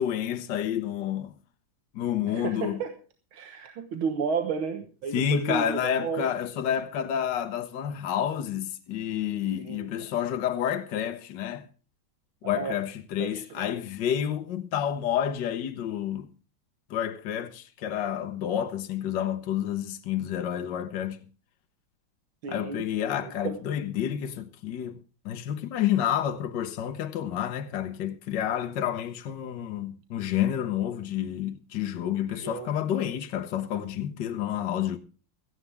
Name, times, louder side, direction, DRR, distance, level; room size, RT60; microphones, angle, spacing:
voice 1, 0.0-1.3 1.9-2.8 5.1-11.7 12.4-16.3 16.9-21.2 22.5-25.0 25.2-35.0, left 10 dB, 60° left, 1.6 m, -29 dB
voice 2, 2.3-2.9 3.3-6.3 9.6-10.1 12.4-12.8 13.2-13.8 22.4-22.9 23.2-23.6 32.3-32.8, right 5 dB, 75° right, 2.1 m, -33 dB
17.0 x 14.0 x 3.4 m
omnidirectional pair, 2.3 m